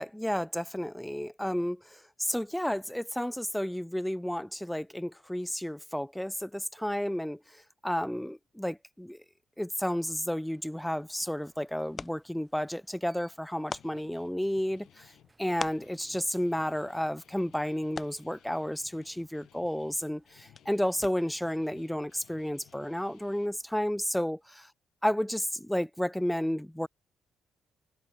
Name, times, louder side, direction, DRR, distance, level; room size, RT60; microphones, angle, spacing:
voice 1, 0.0-9.2 9.6-15.1 15.4-24.7 25.0-26.9, equal, 5° left, 0.5 m, -32 dB
Alarm, 10.1-24.1, right 2 dB, 15° right, 5.2 m, -69 dB
sound 1, 10.8-21.5, left 4 dB, 35° left, 1.5 m, -47 dB
Guitar, 13.7-23.5, left 12 dB, 80° left, 2.1 m, -60 dB
cardioid pair, 90°, 0 cm